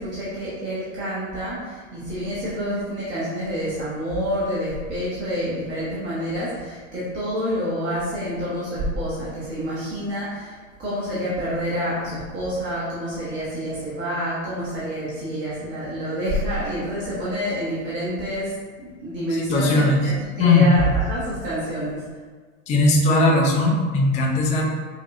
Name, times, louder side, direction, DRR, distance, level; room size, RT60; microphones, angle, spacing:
voice 1, 0.0-18.5 18.8-22.0, equal, 25° right, -9 dB, 1.1 m, -28 dB
voice 2, 19.3-20.0 20.4-20.7 22.7-24.6, left 2 dB, 20° left, -1 dB, 0.4 m, -18 dB
5.2 x 2.3 x 2.6 m, 1.5 s
figure-of-eight pair, 90°, 42 cm